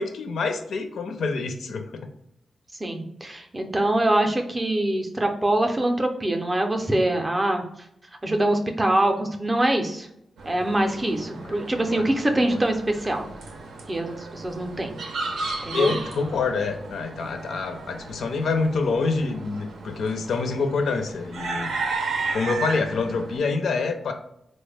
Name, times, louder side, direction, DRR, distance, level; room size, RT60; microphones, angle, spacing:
voice 1, 0.0-2.1 11.4-11.5 11.9-12.1 12.5-12.6 15.5-21.7 22.3-24.1, left 4 dB, 75° left, 6 dB, 0.4 m, -26 dB
voice 2, 2.8-7.6 8.2-10.1 10.5-13.3 13.9-15.0 15.6-15.9, right 1 dB, 20° right, 4 dB, 0.4 m, -24 dB
sound 1, 10.4-23.4, right 3 dB, 80° right, 0.6 m, -34 dB
4.2 x 2.1 x 3.3 m, 0.77 s
wide cardioid pair, 170°, 0 cm